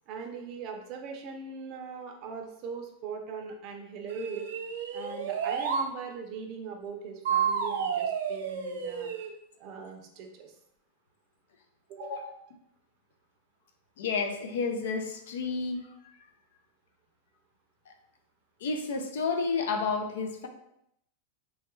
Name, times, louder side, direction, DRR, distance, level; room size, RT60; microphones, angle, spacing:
voice 1, 0.1-4.5 4.9-9.1 9.6-10.5 11.9-12.3, right 5 dB, 40° right, 3 dB, 0.5 m, -40 dB
sound 1, 4.1-5.9 7.3-9.3, right 7 dB, 90° right, 0.5 m, -31 dB
voice 2, 12.0-12.3 14.0-16.2 17.9-18.0 18.6-20.5, left 4 dB, 85° left, 5 dB, 0.5 m, -31 dB
3.1 x 2.2 x 3.0 m, 0.78 s
supercardioid pair, 160°, 0 cm